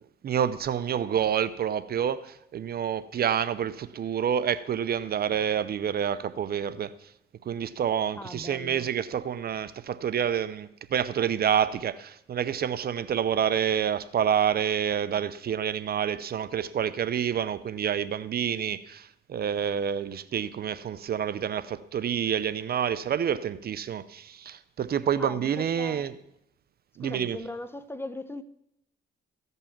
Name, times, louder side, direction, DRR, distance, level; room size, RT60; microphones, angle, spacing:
voice 1, 0.2-6.9 7.5-26.1 27.0-27.4, right 8 dB, 50° right, 0.6 m, -28 dB
voice 2, 8.2-8.9 25.2-26.1 27.0-28.4, left 2 dB, 10° left, 0.7 m, -39 dB
15.0 x 5.5 x 7.2 m
cardioid pair, 90°, 20 cm